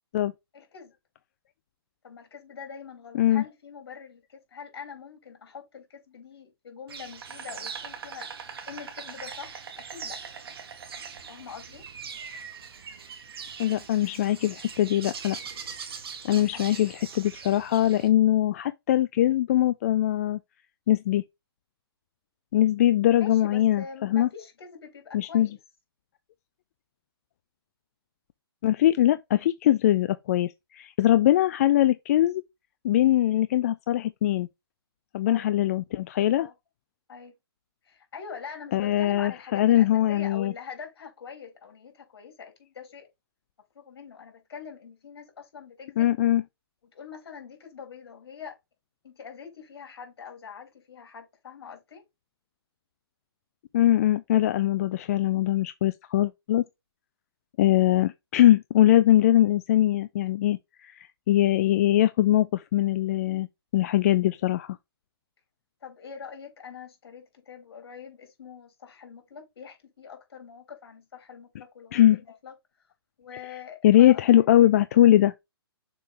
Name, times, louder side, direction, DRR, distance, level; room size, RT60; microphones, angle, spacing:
voice 1, 0.5-0.9 2.0-8.3 8.7-10.2 11.3-11.9 16.5-16.8 23.2-25.6 35.2-35.5 36.4-36.5 37.1-37.3 37.8-43.1 43.7-46.1 46.8-48.6 49.0-52.0 65.8-72.5 73.2-74.4, left 6 dB, 70° left, 3.3 m, -44 dB
Insect, 6.9-18.1, right 6 dB, 65° right, 1.6 m, -41 dB
voice 2, 13.6-15.4 16.2-20.4 20.9-21.2 22.5-24.3 25.1-25.5 28.6-32.4 32.8-34.5 35.1-36.5 38.7-40.5 46.0-46.4 53.7-56.6 57.6-63.5 63.7-64.8 71.9-72.2 73.8-75.3, left 13 dB, 35° left, 0.3 m, -22 dB
6.8 x 3.6 x 3.8 m
hypercardioid pair, 155°, 13 cm